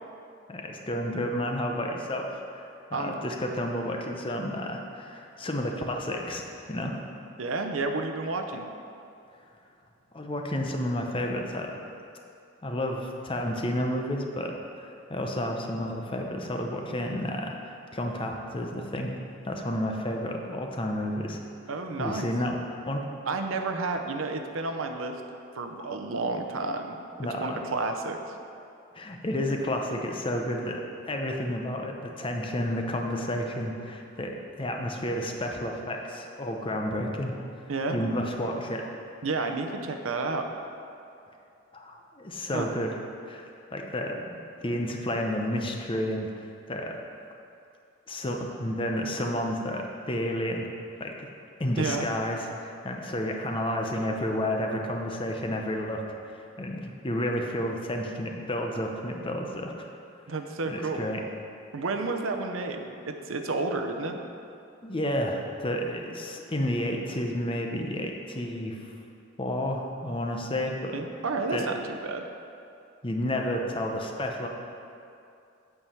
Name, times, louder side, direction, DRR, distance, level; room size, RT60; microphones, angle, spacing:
voice 1, 0.5-7.0 10.1-11.7 12.6-19.1 19.4-21.4 22.0-22.6 22.8-23.0 27.2-27.6 28.9-37.4 37.9-38.9 41.7-42.9 43.3-47.0 48.1-50.7 51.0-51.3 51.6-56.0 56.3-59.7 60.7-61.2 64.8-68.9 69.4-70.9 71.5-71.7 73.0-74.5, left 1 dB, 25° left, 2 dB, 0.7 m, -31 dB
voice 2, 7.4-8.6 21.7-22.3 23.3-25.1 25.6-27.0 27.4-28.2 37.7-38.0 39.2-40.5 42.5-42.7 51.8-52.1 60.3-61.1 61.7-64.2 70.9-72.2, right 3 dB, 80° right, 5 dB, 0.7 m, -31 dB
8.9 x 4.6 x 6.9 m, 2.6 s
head